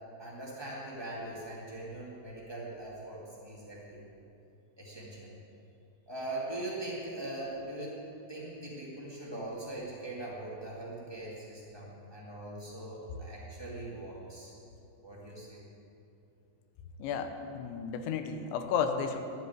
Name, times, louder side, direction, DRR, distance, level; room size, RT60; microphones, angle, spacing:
voice 1, 0.2-4.0 4.8-5.3 6.1-8.0 8.3-14.5 15.0-15.6, right 1 dB, 40° right, -6 dB, 0.3 m, -41 dB
voice 2, 17.0-19.2, left 6 dB, 85° left, 7 dB, 3.2 m, -33 dB
11.5 x 8.7 x 9.5 m, 2.8 s
omnidirectional pair, 5.1 m